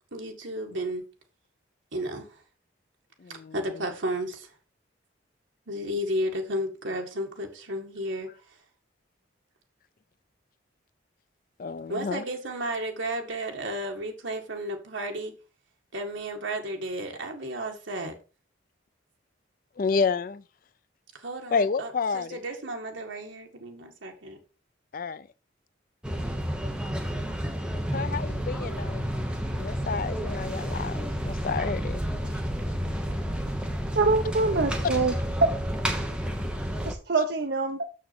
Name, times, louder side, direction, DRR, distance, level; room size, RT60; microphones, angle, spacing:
voice 1, 0.1-1.0 1.9-2.4 3.3-4.6 5.7-8.6 11.9-15.3 15.9-18.1 21.1-24.4, right 1 dB, 75° right, 1.9 m, -33 dB
voice 2, 3.2-3.5 11.6-12.2 19.8-20.4 21.5-22.4 24.9-25.3 27.9-29.1 29.5-32.3, left 5 dB, 45° left, 0.4 m, -30 dB
sound 1, 26.0-36.9, equal, 5° right, 1.0 m, -30 dB
voice 3, 33.9-35.1 36.8-37.8, right 3 dB, 55° right, 0.7 m, -25 dB
6.8 x 6.4 x 4.3 m
head